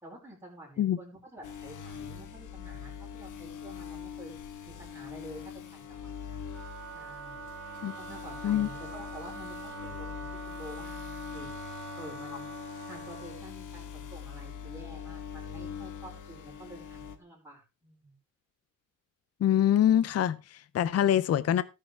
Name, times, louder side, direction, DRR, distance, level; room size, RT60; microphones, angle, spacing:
voice 1, 0.0-4.3 4.6-6.4 6.9-7.5 8.0-11.5 12.0-12.5 12.9-18.2, right 1 dB, 10° right, 5.0 m, -49 dB
sound 1, 1.4-17.2, left 7 dB, 70° left, 1.5 m, -43 dB
Wind instrument woodwind instrument, 6.4-13.5, right 5 dB, 50° right, 2.1 m, -44 dB
voice 2, 19.4-21.6, left 10 dB, 50° left, 0.6 m, -25 dB
18.5 x 6.6 x 3.4 m
wide cardioid pair, 175°, 32 cm